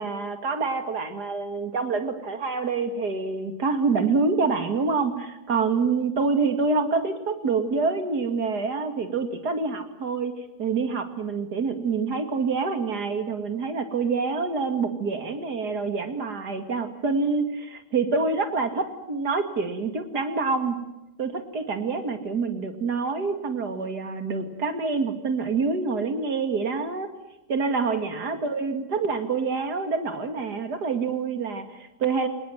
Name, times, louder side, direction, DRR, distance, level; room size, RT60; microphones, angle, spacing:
voice 1, 0.0-10.3 10.6-20.8 21.2-27.1 27.5-32.3, right 4 dB, 90° right, 8 dB, 2.9 m, -26 dB
27.5 x 19.0 x 9.3 m, 0.94 s
omnidirectional pair, 1.7 m